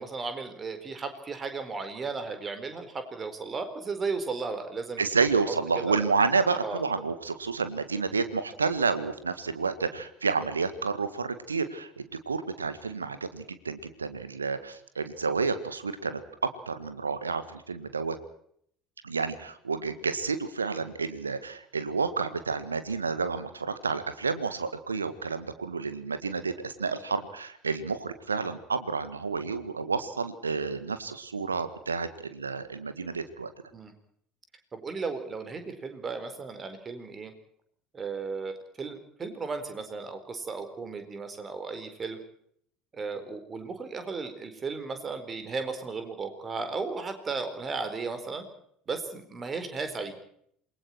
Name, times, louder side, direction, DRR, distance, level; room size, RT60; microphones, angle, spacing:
voice 1, 0.0-5.1 5.5-5.6 5.9-6.0 6.6-6.8 33.7-33.9 34.7-37.3 37.9-42.2 42.9-48.4 48.9-50.1, right 4 dB, 25° right, 8 dB, 4.4 m, -35 dB
voice 2, 5.0-18.2 19.0-33.5, right 4 dB, 80° right, 12 dB, 1.7 m, -30 dB
28.0 x 21.5 x 4.6 m, 0.66 s
figure-of-eight pair, 65°, 0 cm